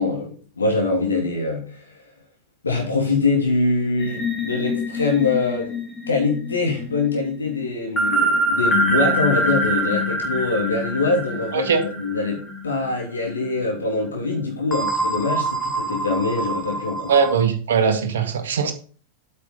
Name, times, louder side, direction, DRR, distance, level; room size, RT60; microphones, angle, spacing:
voice 1, 0.0-2.0 2.6-5.7 6.1-11.7 12.0-17.1, left 3 dB, 75° left, 3.0 m, -23 dB
sound 1, 4.0-12.9 13.2-13.4 14.7-17.4, right 1 dB, 10° left, 2.7 m, -25 dB
voice 2, 17.1-18.7, right 6 dB, 60° right, 1.8 m, -20 dB
8.4 x 8.2 x 3.9 m
figure-of-eight pair, 90°, 0 cm